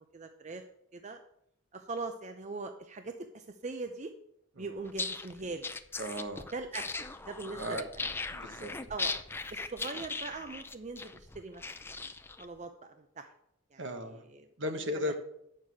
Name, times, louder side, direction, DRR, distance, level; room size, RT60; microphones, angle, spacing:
voice 1, 0.1-0.6 0.9-1.2 1.7-4.1 4.6-5.7 6.5-7.9 8.9-9.1 9.5-11.9 12.4-13.3 13.7-14.5, right 3 dB, 35° right, 7 dB, 0.6 m, -41 dB
sound 1, 4.8-12.4, left 3 dB, 10° left, 0.5 m, -39 dB
voice 2, 6.0-6.5 7.6-7.8 8.3-8.7 13.8-14.2 14.6-15.2, equal, 65° right, 7 dB, 1.3 m, -36 dB
8.8 x 6.6 x 6.3 m, 0.77 s
head